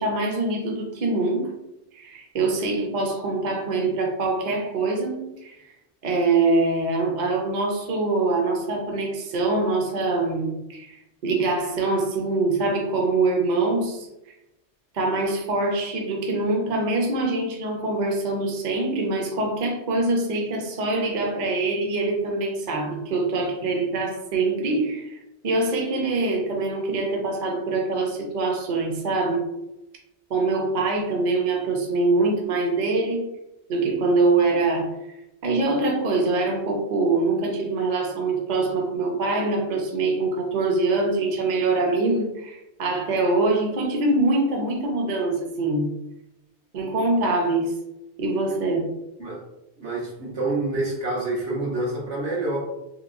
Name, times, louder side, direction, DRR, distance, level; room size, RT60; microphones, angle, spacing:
voice 1, 0.0-1.5 1.9-5.7 6.0-14.1 14.9-29.4 30.3-33.2 33.7-34.9 35.4-45.9 46.7-47.7 48.2-48.9, right 3 dB, 50° right, 1 dB, 0.6 m, -24 dB
voice 2, 49.8-52.6, right 2 dB, 80° right, -3 dB, 1.2 m, -27 dB
3.1 x 2.9 x 2.5 m, 0.90 s
omnidirectional pair, 1.1 m